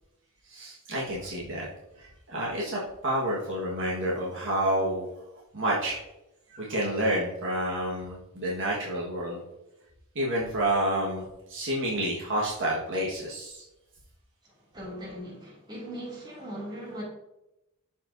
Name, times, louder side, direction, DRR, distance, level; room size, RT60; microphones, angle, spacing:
voice 1, 0.5-1.7 2.0-5.1 5.5-6.0 6.5-9.4 10.1-13.6, right 1 dB, 60° right, -5 dB, 1.5 m, -29 dB
voice 2, 14.4-17.0, equal, 20° right, -5 dB, 2.6 m, -40 dB
12.0 x 4.4 x 2.6 m, 0.92 s
head